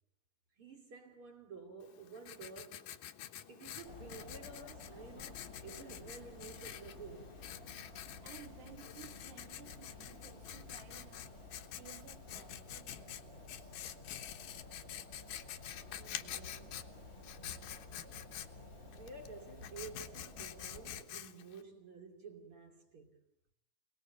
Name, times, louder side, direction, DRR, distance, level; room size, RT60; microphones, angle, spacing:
voice 1, 0.6-3.0 3.5-7.4 16.0-16.9 18.9-23.2, right 4 dB, 35° right, 3.1 m, -52 dB
Writing, 1.8-21.6, left 11 dB, 65° left, 2.3 m, -48 dB
sound 1, 3.8-21.0, left 2 dB, 15° right, 3.4 m, -53 dB
voice 2, 8.2-13.7, right 10 dB, 65° right, 4.5 m, -57 dB
28.5 x 20.0 x 8.5 m
omnidirectional pair, 5.2 m